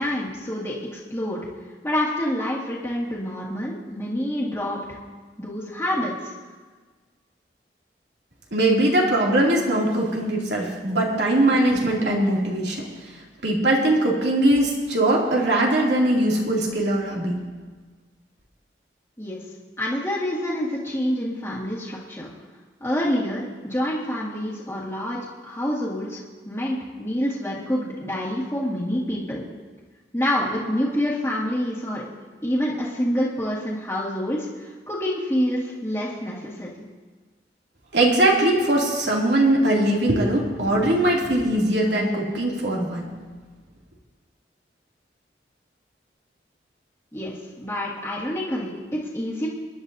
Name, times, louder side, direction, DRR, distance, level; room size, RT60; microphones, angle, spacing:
voice 1, 0.0-1.5 1.8-5.0 5.4-6.3 19.2-19.4 19.8-22.3 22.8-29.4 30.1-32.0 32.4-36.9 47.1-49.5, equal, 15° left, -8 dB, 1.7 m, -27 dB
voice 2, 8.5-12.9 13.4-17.4 37.9-43.1, right 1 dB, 80° right, -2 dB, 2.6 m, -21 dB
26.0 x 11.0 x 2.7 m, 1.4 s
head